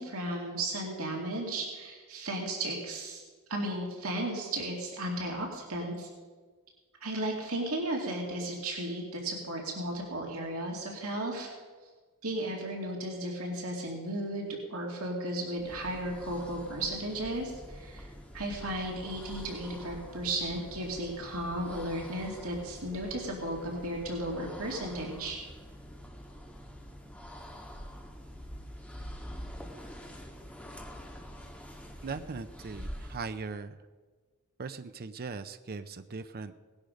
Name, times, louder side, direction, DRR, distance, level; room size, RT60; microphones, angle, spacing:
voice 1, 0.0-3.2 3.5-6.1 7.0-11.5 12.2-18.1 18.3-25.4, right 1 dB, 70° right, 0 dB, 2.5 m, -35 dB
sound 1, 15.5-33.3, equal, 5° left, 1.7 m, -46 dB
voice 2, 32.0-33.8 34.6-36.6, right 4 dB, 45° right, 10 dB, 0.6 m, -39 dB
18.0 x 11.5 x 5.2 m, 1.4 s
head